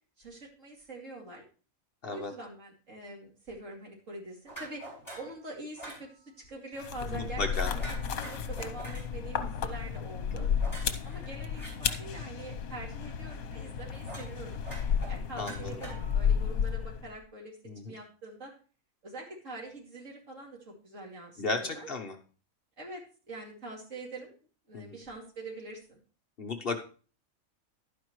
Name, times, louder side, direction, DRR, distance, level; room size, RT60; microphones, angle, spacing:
voice 1, 0.2-1.5 2.1-4.8 5.2-6.1 6.5-7.8 8.2-10.5 11.0-14.6 15.1-17.5 17.8-18.5 19.0-21.9 22.8-23.0 23.3-24.3 24.7-26.0, right 2 dB, 65° right, -1 dB, 3.0 m, -44 dB
sound 1, 4.5-5.3 5.8-6.0 7.8-9.0 10.6-11.7 14.0-14.3 14.6-16.3, right 1 dB, 25° left, 6.3 m, -44 dB
sound 2, 6.8-17.2, left 7 dB, 85° left, 1.3 m, -33 dB
voice 2, 7.1-7.7 10.3-10.4 15.4-15.8 17.6-18.0 21.4-22.2 24.7-25.0 26.4-26.8, left 3 dB, 45° left, 5 dB, 1.1 m, -34 dB
11.5 x 9.9 x 3.1 m, 0.38 s
omnidirectional pair, 1.5 m